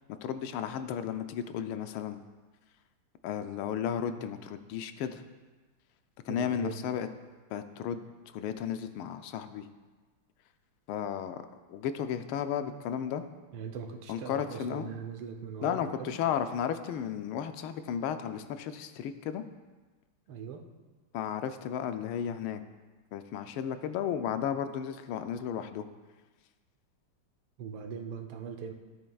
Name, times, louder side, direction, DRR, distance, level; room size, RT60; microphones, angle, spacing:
voice 1, 0.2-2.2 3.2-5.2 6.2-7.1 7.5-8.0 8.3-9.6 10.9-11.4 11.7-13.2 14.1-14.9 15.6-19.4 21.1-22.6 23.1-25.8, left 9 dB, 80° left, 9 dB, 1.4 m, -34 dB
voice 2, 6.3-6.8 13.5-16.1 20.3-20.6 27.6-28.7, right 6 dB, 90° right, 4 dB, 1.7 m, -40 dB
14.0 x 8.8 x 2.3 m, 1.3 s
omnidirectional pair, 2.3 m